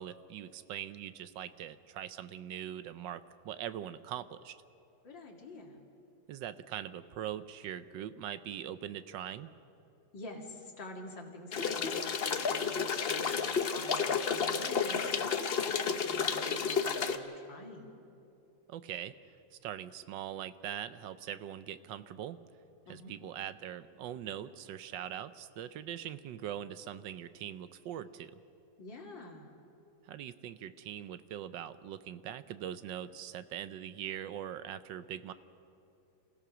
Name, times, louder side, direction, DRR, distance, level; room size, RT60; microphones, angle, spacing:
voice 1, 0.0-4.6 6.3-9.5 18.7-19.1 19.5-22.4 22.9-28.3 30.0-35.3, right 10 dB, 75° right, 13 dB, 1.3 m, -42 dB
voice 2, 5.0-5.8 10.1-18.0 22.9-23.1 28.8-29.6, left 2 dB, 75° left, 1 dB, 2.9 m, -47 dB
sound 1, 11.5-17.2, left 6 dB, 50° left, 0.7 m, -31 dB
27.0 x 16.5 x 6.1 m, 2.8 s
omnidirectional pair, 2.0 m